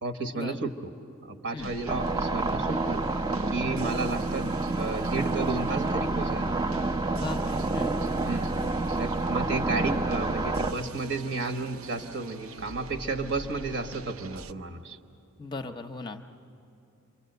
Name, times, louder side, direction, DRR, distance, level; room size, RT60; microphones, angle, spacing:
voice 1, 0.0-0.9 1.2-3.1 3.5-4.5 4.8-6.6 8.2-8.6 9.0-15.0, right 3 dB, 55° right, 8 dB, 1.2 m, -32 dB
sound 1, 1.6-14.5, right 3 dB, 80° right, 0.6 m, -44 dB
sound 2, 1.9-10.7, right 2 dB, 20° right, 0.5 m, -28 dB
voice 2, 7.1-7.9 15.4-16.2, left 3 dB, 20° left, 5 dB, 0.7 m, -37 dB
28.0 x 24.0 x 8.0 m, 2.7 s
head